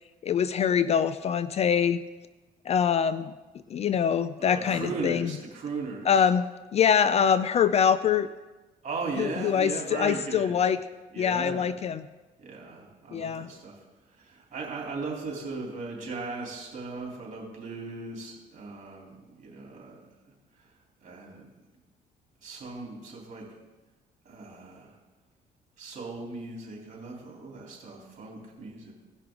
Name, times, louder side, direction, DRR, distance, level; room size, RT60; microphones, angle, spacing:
voice 1, 0.2-2.0 2.7-3.3 3.7-5.3 6.1-6.5 6.7-8.3 9.2-10.8 11.2-12.1 13.1-13.5, left 7 dB, 40° left, 13 dB, 0.4 m, -24 dB
voice 2, 4.4-6.2 8.8-10.6 11.1-11.7 12.4-13.8 14.2-20.0 20.2-20.3 21.0-21.5 22.4-23.4 24.2-24.9 25.8-28.9, right 3 dB, 45° right, -2 dB, 3.3 m, -37 dB
17.0 x 5.7 x 3.8 m, 1.2 s
cardioid pair, 110°, 17 cm